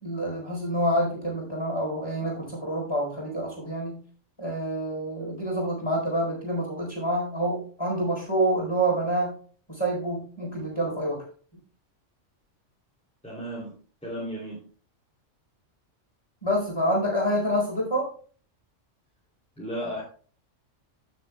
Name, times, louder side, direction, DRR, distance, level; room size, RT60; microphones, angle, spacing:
voice 1, 0.0-4.0 4.4-9.4 9.7-11.2 16.4-18.1, right 1 dB, 20° left, -2 dB, 4.3 m, -27 dB
voice 2, 13.2-13.7 14.0-14.6 19.6-20.0, equal, 5° left, -7 dB, 3.0 m, -34 dB
15.5 x 7.0 x 2.3 m, 0.42 s
omnidirectional pair, 1.3 m